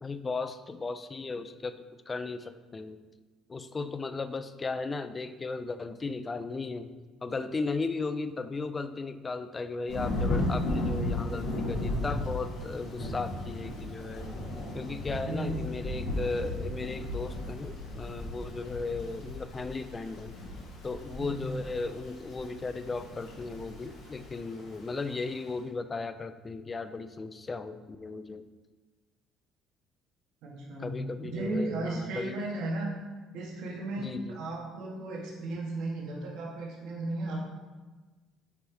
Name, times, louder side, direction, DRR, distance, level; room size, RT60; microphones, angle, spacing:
voice 1, 0.0-1.7 2.1-3.0 3.5-6.9 7.2-14.3 14.7-20.4 20.8-28.5 30.8-32.4 34.0-34.4, left 3 dB, 20° left, 11 dB, 0.3 m, -36 dB
Thunder / Rain, 9.9-25.5, left 1 dB, 70° left, 1.8 m, -35 dB
voice 2, 15.1-15.6 21.2-21.4 30.4-30.9 31.3-32.9 33.3-34.1 34.3-37.4, right 2 dB, 80° right, -3 dB, 1.4 m, -35 dB
9.4 x 3.4 x 3.3 m, 1.3 s
cardioid pair, 125°, 0 cm